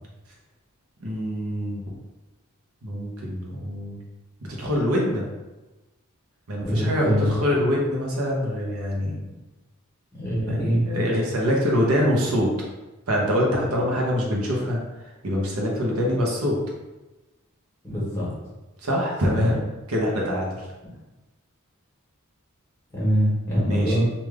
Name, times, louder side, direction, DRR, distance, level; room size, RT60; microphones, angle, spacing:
voice 1, 1.0-1.8 2.8-4.0 4.5-5.2 6.5-9.2 10.5-12.5 13.1-14.8 15.2-16.6 18.8-19.6 19.9-20.7 23.7-24.0, equal, 80° right, -2 dB, 0.8 m, -24 dB
voice 2, 6.6-7.5 10.1-10.8 17.8-18.3 19.2-19.5 22.9-24.0, equal, 10° left, -7 dB, 1.4 m, -24 dB
3.3 x 2.5 x 3.4 m, 1.1 s
head